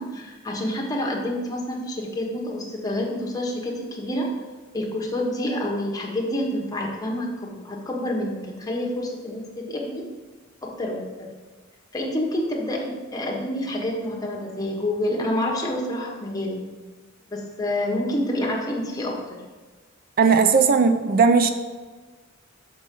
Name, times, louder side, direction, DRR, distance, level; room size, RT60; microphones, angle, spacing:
voice 1, 0.0-4.3 4.7-10.0 10.6-11.3 11.9-16.6 17.3-19.4, left 1 dB, 20° left, -1 dB, 1.2 m, -28 dB
voice 2, 20.2-21.5, right 5 dB, 45° right, 8 dB, 0.4 m, -17 dB
6.1 x 5.5 x 5.3 m, 1.3 s
head